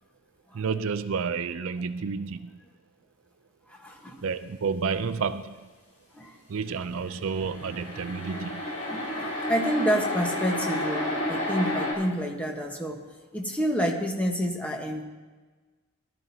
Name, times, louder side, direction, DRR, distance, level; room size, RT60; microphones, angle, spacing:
voice 1, 0.5-2.6 4.2-5.7 6.5-8.6, right 5 dB, 70° right, 12 dB, 0.5 m, -30 dB
voice 2, 3.7-4.3 6.1-6.4 8.9-13.0 13.3-15.0, equal, 5° left, 1 dB, 1.1 m, -29 dB
sound 1, 7.2-11.9, left 1 dB, 35° left, 3.5 m, -31 dB
18.0 x 12.0 x 2.8 m, 1.3 s
head